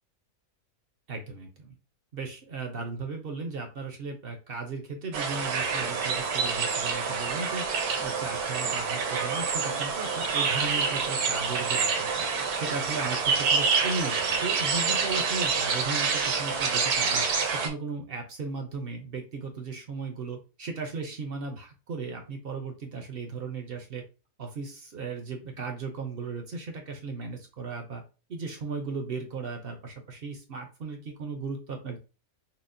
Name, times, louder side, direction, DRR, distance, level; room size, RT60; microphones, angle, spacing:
voice 1, 1.1-1.8 2.1-7.7 8.0-12.3 12.5-24.0 24.4-28.0 28.3-32.0, right 4 dB, 60° right, 3 dB, 0.6 m, -36 dB
sound 1, 5.1-17.7, right 5 dB, 75° right, 1.3 m, -27 dB
5.8 x 2.1 x 2.5 m, 0.32 s
omnidirectional pair, 1.6 m